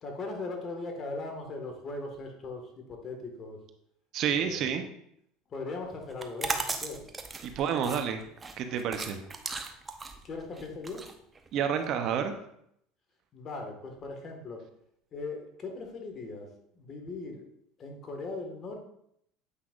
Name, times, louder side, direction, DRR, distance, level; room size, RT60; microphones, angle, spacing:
voice 1, 0.0-3.6 4.3-4.7 5.5-7.0 10.2-11.0 13.3-14.6 15.1-16.5 16.7-17.4 17.8-18.8, left 3 dB, 40° left, 3 dB, 1.7 m, -39 dB
voice 2, 4.1-4.8 7.4-8.2 8.6-9.2 9.4-9.7 11.5-12.3, right 8 dB, 55° right, 6 dB, 0.8 m, -30 dB
sound 1, 6.1-11.8, right 3 dB, 20° right, 0.7 m, -37 dB
8.1 x 5.6 x 2.5 m, 0.72 s
hypercardioid pair, 90°, 0 cm